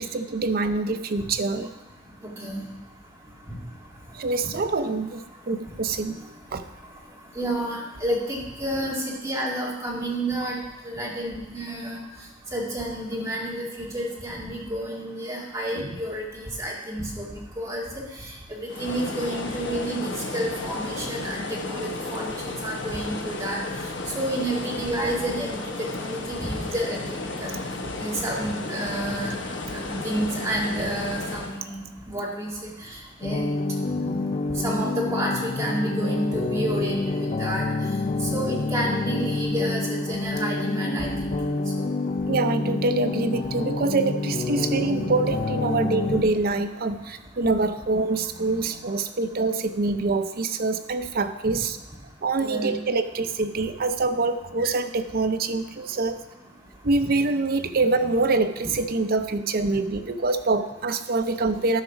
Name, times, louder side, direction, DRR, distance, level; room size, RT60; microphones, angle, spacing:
voice 1, 0.0-1.7 4.1-5.2 5.5-6.2 6.5-6.6 15.8-15.9 33.8-34.4 42.3-51.8 52.2-56.2 56.8-61.8, right 3 dB, 55° right, 9 dB, 0.6 m, -25 dB
voice 2, 2.2-2.6 7.4-10.6 10.8-12.0 12.5-18.0 18.5-23.6 24.1-27.0 27.4-27.5 28.0-29.4 29.7-31.8 32.1-32.7 33.2-33.5 34.6-37.7 38.3-41.8 52.4-52.7, right 1 dB, 15° right, -4 dB, 2.2 m, -30 dB
sound 1, 18.7-31.6, left 3 dB, 80° left, 1.1 m, -33 dB
sound 2, 33.2-46.2, left 3 dB, 40° left, 0.4 m, -28 dB
12.0 x 5.0 x 6.0 m, 0.95 s
head